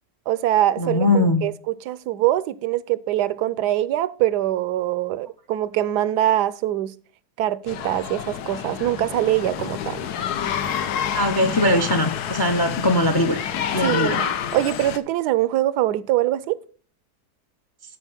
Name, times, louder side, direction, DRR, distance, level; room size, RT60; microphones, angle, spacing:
voice 1, 0.3-6.9 7.4-10.1 13.8-16.6, right 13 dB, 90° right, 1.2 m, -23 dB
voice 2, 0.8-1.4 11.1-13.4 13.7-14.2, left 1 dB, 40° left, 0.3 m, -20 dB
sound 1, 7.7-15.0, left 9 dB, 75° left, 1.3 m, -28 dB
11.5 x 4.4 x 5.5 m
omnidirectional pair, 1.7 m